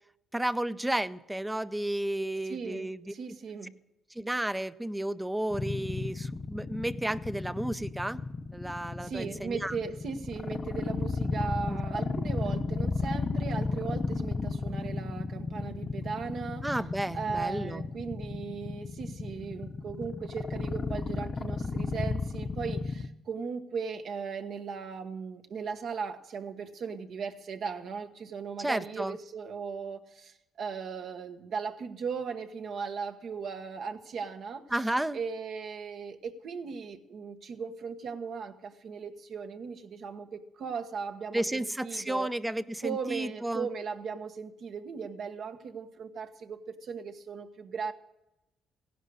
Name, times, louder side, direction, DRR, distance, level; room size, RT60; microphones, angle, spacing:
voice 1, 0.3-3.1 4.2-8.2 8.5-9.7 11.7-11.8 16.6-17.8 28.6-29.2 34.7-35.2 41.3-43.7, right 1 dB, 10° right, 13 dB, 0.5 m, -32 dB
voice 2, 2.4-3.7 9.0-16.7 17.1-34.6 35.1-42.3 42.8-47.9, right 5 dB, 65° right, 6 dB, 1.3 m, -37 dB
sound 1, 5.5-23.1, left 4 dB, 35° left, 0.9 m, -33 dB
16.0 x 11.0 x 6.4 m, 0.91 s
cardioid pair, 90°, 0 cm